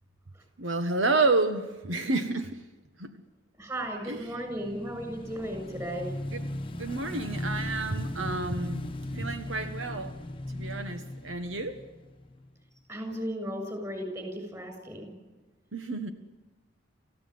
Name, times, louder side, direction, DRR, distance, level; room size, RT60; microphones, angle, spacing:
voice 1, 0.6-2.6 3.0-3.1 4.1-4.4 6.3-6.5 6.8-10.1 10.5-11.8 15.7-16.1, right 3 dB, 80° right, 8 dB, 1.5 m, -30 dB
voice 2, 3.6-6.1 12.9-15.1, equal, 15° right, 4 dB, 7.0 m, -35 dB
Motorcycle / Engine, 4.1-12.6, left 1 dB, 25° left, 1.1 m, -38 dB
29.0 x 16.0 x 9.6 m, 1.2 s
head